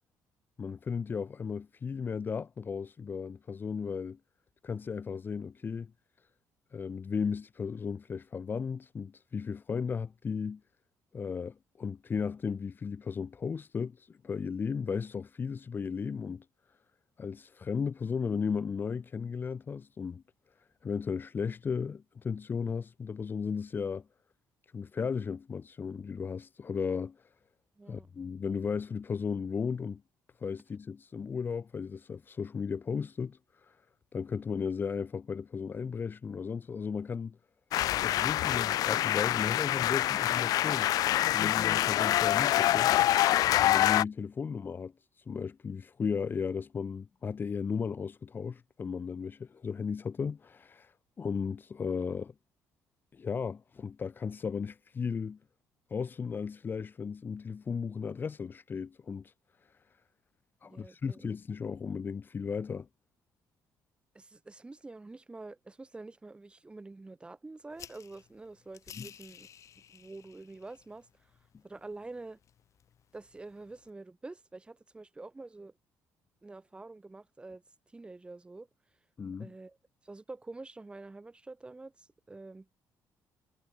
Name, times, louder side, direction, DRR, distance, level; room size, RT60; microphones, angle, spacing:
voice 1, 0.6-4.2 4.6-5.9 6.7-10.6 11.1-16.4 17.2-20.2 20.8-24.1 24.7-27.2 27.9-30.0 30.4-33.8 34.1-37.4 37.9-40.9 41.3-42.9 43.6-44.9 45.3-50.9 51.2-52.3 53.1-55.4 55.9-59.3 60.6-62.9 68.9-69.1 79.2-79.5, left 6 dB, 30° left, 0.8 m, -35 dB
voice 2, 27.8-28.1 60.6-61.3 64.1-69.5 69.9-71.1 71.6-72.4 73.1-75.7 76.4-77.6 77.9-78.7 79.4-79.8 80.0-82.7, right 3 dB, 15° right, 2.0 m, -47 dB
sound 1, 37.7-44.0, left 14 dB, 75° left, 0.6 m, -26 dB
sound 2, 67.7-73.9, left 9 dB, 55° left, 4.5 m, -55 dB
cardioid pair, 120°, 6 cm